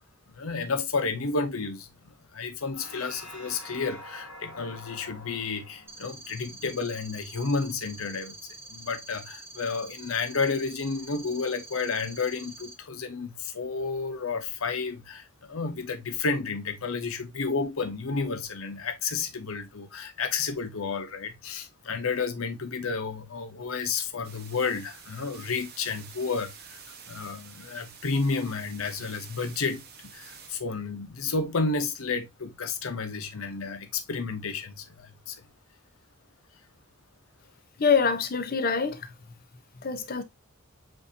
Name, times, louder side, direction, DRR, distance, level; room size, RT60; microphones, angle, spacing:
voice 1, 0.3-8.4 8.7-35.5, left 4 dB, 85° left, 0.8 m, -31 dB
sound 1, 2.7-7.5, left 1 dB, 65° left, 2.5 m, -47 dB
sound 2, 5.9-12.7, right 2 dB, 10° right, 0.9 m, -46 dB
sound 3, 24.2-30.6, right 7 dB, 50° right, 0.8 m, -48 dB
voice 2, 37.8-39.4 39.7-40.2, left 5 dB, 45° left, 0.7 m, -26 dB
7.7 x 2.6 x 2.7 m
head